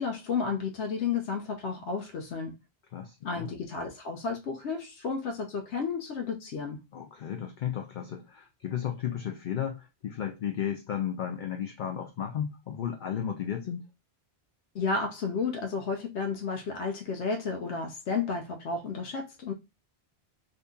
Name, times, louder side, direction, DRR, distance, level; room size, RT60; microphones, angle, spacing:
voice 1, 0.0-2.6 3.2-6.8 14.7-19.5, left 5 dB, 85° left, 1.0 m, -32 dB
voice 2, 2.9-3.5 6.9-13.9, left 9 dB, 60° left, 0.6 m, -34 dB
2.7 x 2.6 x 3.4 m
omnidirectional pair, 1.1 m